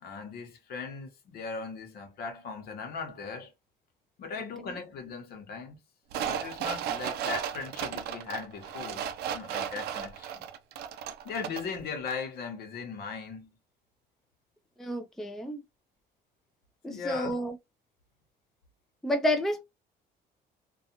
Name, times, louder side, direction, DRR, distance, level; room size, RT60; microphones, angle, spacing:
voice 1, 0.0-3.5 4.2-5.8 6.2-10.4 11.2-13.5 16.9-17.3, left 5 dB, 65° left, 1.0 m, -38 dB
sound 1, 6.1-11.8 12.1-12.2, right 9 dB, 75° right, 0.4 m, -35 dB
voice 2, 14.8-15.6 16.8-17.6 19.0-19.6, left 1 dB, ahead, 0.4 m, -30 dB
2.4 x 2.3 x 2.8 m
cardioid pair, 110°, 17 cm